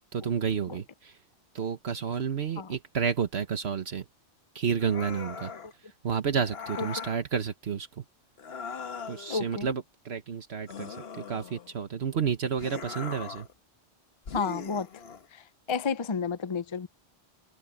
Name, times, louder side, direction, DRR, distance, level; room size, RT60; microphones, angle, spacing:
voice 1, 0.1-1.1 1.5-4.0 4.5-5.5 6.0-7.9 9.1-13.5, right 7 dB, 70° right, 1.4 m, -30 dB
sound 1, 4.8-5.7 6.4-7.2 8.4-9.4 10.7-11.8 12.6-13.5 14.3-15.3, left 5 dB, 70° left, 1.4 m, -40 dB
voice 2, 9.3-9.7 14.3-14.9 15.3-16.9, left 5 dB, 35° left, 0.6 m, -31 dB
omnidirectional pair, 1.1 m